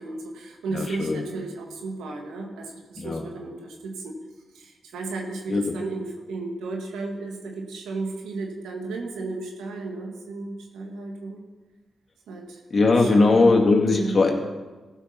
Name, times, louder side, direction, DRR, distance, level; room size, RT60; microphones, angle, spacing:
voice 1, 0.0-4.1 4.5-11.4 12.3-12.6 13.0-13.5 13.9-14.2, right 3 dB, 85° right, 1 dB, 1.8 m, -34 dB
voice 2, 0.7-1.2 3.0-3.2 5.5-5.6 12.7-14.3, left 3 dB, 50° left, 1 dB, 2.2 m, -19 dB
15.0 x 5.8 x 5.8 m, 1.3 s
supercardioid pair, 40°, 0 cm